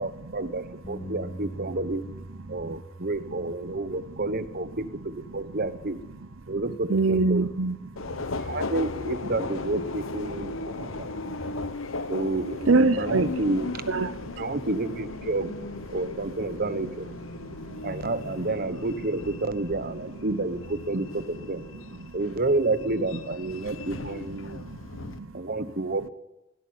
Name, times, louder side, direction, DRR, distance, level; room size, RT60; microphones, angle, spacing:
voice 1, 0.0-2.0 2.5-6.0 6.5-7.5 8.4-11.1 12.1-13.7 14.4-15.6 15.9-17.1 17.8-21.6 22.1-24.6 25.3-26.1, right 2 dB, 50° right, 13 dB, 1.1 m, -30 dB
Bass guitar, 0.8-7.1, right 1 dB, 25° left, 2.0 m, -45 dB
voice 2, 6.9-7.8 8.0-8.1 10.7-11.6 12.7-13.3 13.9-14.4 17.6-17.8 22.0-22.1 24.4-25.3, right 3 dB, 75° right, 15 dB, 0.8 m, -26 dB
Subway metro underground, 8.0-25.2, left 3 dB, 80° left, 1.1 m, -37 dB
22.0 x 13.0 x 9.5 m, 0.97 s
head